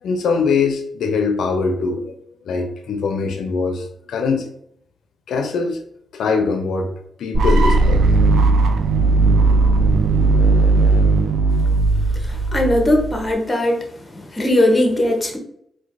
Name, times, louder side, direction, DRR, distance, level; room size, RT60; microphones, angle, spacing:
voice 1, 0.0-2.1 2.5-4.4 5.3-5.8 6.1-6.9 7.2-8.0, left 4 dB, 90° left, 5 dB, 0.4 m, -22 dB
sound 1, 7.3-13.3, right 3 dB, 80° right, 0.3 m, -16 dB
voice 2, 12.3-13.8 14.1-15.4, left 1 dB, 25° left, 2 dB, 0.8 m, -19 dB
4.4 x 2.1 x 2.5 m, 0.71 s
cardioid pair, 100°, 0 cm